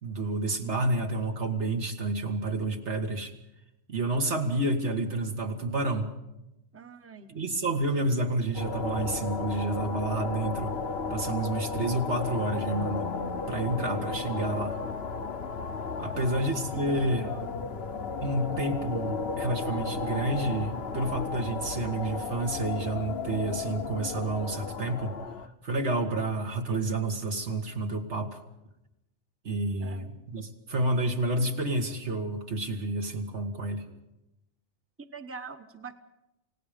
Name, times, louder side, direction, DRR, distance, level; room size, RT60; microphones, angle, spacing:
voice 1, 0.0-3.3 3.9-6.1 7.3-10.7 11.1-13.1 13.5-14.8 16.0-17.3 18.2-25.2 25.6-28.4 29.4-33.9, right 2 dB, 70° right, 4 dB, 2.2 m, -29 dB
voice 2, 6.7-7.4 16.0-16.3 16.7-17.6 29.8-30.1 35.1-35.9, right 5 dB, 10° right, 7 dB, 1.0 m, -45 dB
sound 1, 8.5-25.5, left 4 dB, 60° left, 1.2 m, -34 dB
29.0 x 17.5 x 5.2 m, 0.91 s
omnidirectional pair, 1.2 m